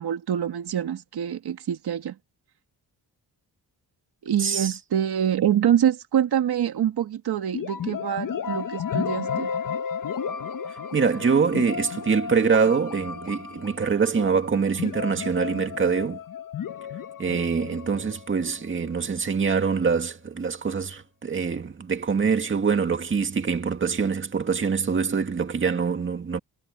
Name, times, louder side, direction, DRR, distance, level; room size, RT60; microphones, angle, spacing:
voice 1, 0.0-2.2 4.2-9.5, right 9 dB, 70° right, 2.0 m, -25 dB
voice 2, 4.4-4.7 10.9-16.2 17.2-26.4, right 5 dB, 30° right, 2.0 m, -24 dB
sound 1, 7.5-19.2, left 7 dB, 55° left, 1.2 m, -33 dB
wide cardioid pair, 165°, 40 cm